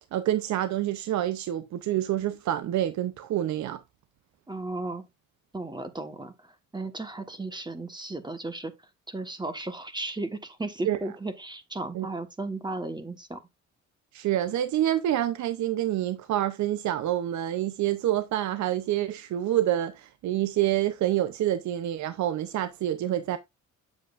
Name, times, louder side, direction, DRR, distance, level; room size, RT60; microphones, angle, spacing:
voice 1, 0.1-3.8 10.9-11.0 11.9-12.1 14.1-23.4, right 12 dB, 70° right, 0.7 m, -27 dB
voice 2, 4.5-5.0 5.5-8.7 9.1-13.4, right 2 dB, 15° right, 1.2 m, -35 dB
7.6 x 7.4 x 2.5 m
cardioid pair, 90°, 30 cm